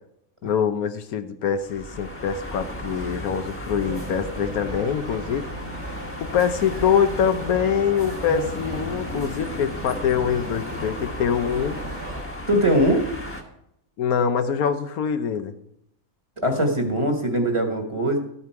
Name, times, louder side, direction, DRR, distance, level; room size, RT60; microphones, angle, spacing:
voice 1, 0.4-5.5 6.2-11.8 14.0-15.5, left 7 dB, 80° left, 9 dB, 1.3 m, -24 dB
sound 1, 1.5-13.4, left 1 dB, 10° left, 1.2 m, -34 dB
sound 2, 3.8-12.2, right 2 dB, 65° right, 2.4 m, -40 dB
voice 2, 12.5-13.0 16.4-18.2, equal, 20° right, 3 dB, 1.5 m, -21 dB
12.5 x 8.6 x 4.6 m, 0.77 s
omnidirectional pair, 1.5 m